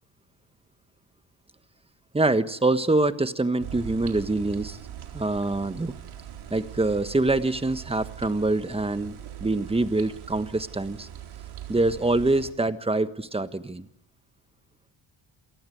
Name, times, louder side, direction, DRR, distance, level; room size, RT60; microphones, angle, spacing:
voice 1, 2.1-4.8 5.1-5.9 6.5-11.1 11.7-13.9, right 2 dB, 10° right, 11 dB, 1.4 m, -25 dB
sound 1, 3.6-12.5, right 10 dB, 85° right, 4.1 m, -41 dB
28.0 x 19.0 x 9.3 m, 0.82 s
cardioid pair, 100°, 48 cm